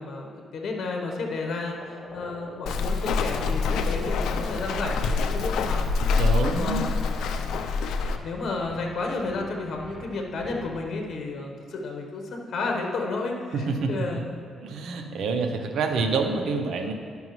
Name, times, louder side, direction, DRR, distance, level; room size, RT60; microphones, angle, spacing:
voice 1, 0.0-1.8 2.1-5.8 6.6-7.6 8.2-14.2, left 3 dB, 60° left, 1 dB, 1.0 m, -32 dB
sound 1, 1.6-10.8, equal, 5° left, 2.1 m, -46 dB
Walk footsteps, 2.7-8.2, left 4 dB, 80° left, 0.4 m, -26 dB
voice 2, 6.2-6.9 13.5-14.2 14.6-16.9, right 4 dB, 70° right, 4 dB, 0.7 m, -27 dB
11.5 x 5.4 x 3.1 m, 2.1 s
cardioid pair, 90°, 0 cm